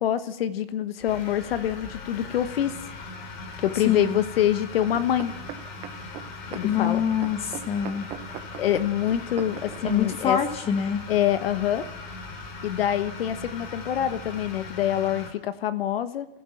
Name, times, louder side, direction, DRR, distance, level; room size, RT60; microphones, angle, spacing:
voice 1, 0.0-2.8 3.6-5.3 6.5-7.0 8.6-10.4 11.1-11.9 12.6-16.3, left 11 dB, 80° left, 12 dB, 1.3 m, -25 dB
sound 1, 1.0-15.3, left 3 dB, 50° left, 3.7 m, -39 dB
voice 2, 3.9-4.2 6.6-8.1 9.8-11.0, left 8 dB, 20° left, 9 dB, 1.2 m, -25 dB
sound 2, 4.9-9.8 10.5-10.6, right 12 dB, 20° right, 0.9 m, -40 dB
28.0 x 15.5 x 5.9 m, 0.97 s
supercardioid pair, 160°, 29 cm